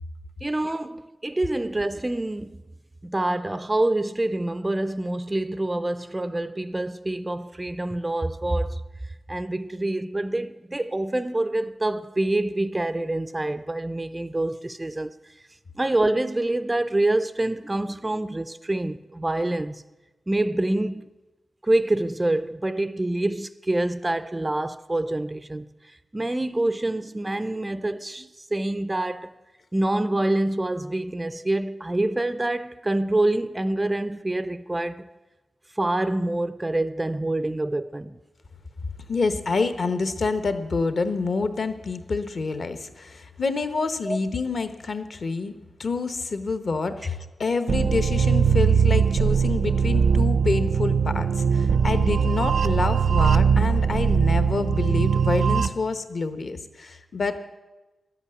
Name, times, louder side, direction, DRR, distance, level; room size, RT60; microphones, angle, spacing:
voice 1, 0.4-2.6 3.0-8.8 9.3-15.2 15.8-19.8 20.3-21.1 21.6-25.7 26.1-29.3 29.7-35.1 35.7-38.2 44.0-44.2, right 1 dB, 15° right, 0.3 m, -26 dB
voice 2, 39.1-45.5 45.8-57.4, left 4 dB, 50° left, 0.9 m, -27 dB
sound 1, 47.7-55.7, right 6 dB, 85° right, 0.5 m, -21 dB
12.0 x 8.1 x 9.7 m
wide cardioid pair, 175°, 0 cm